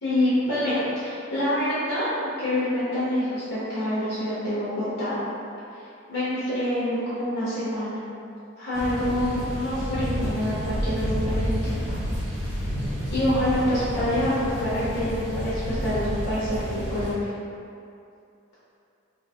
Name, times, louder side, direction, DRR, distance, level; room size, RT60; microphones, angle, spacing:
voice 1, 0.0-5.2 5.8-8.0 8.6-12.0 13.1-17.3, left 1 dB, 70° left, -12 dB, 1.0 m, -26 dB
sound 1, 8.7-17.1, equal, 5° right, 1.1 m, -30 dB
3.2 x 2.4 x 3.4 m, 2.5 s
head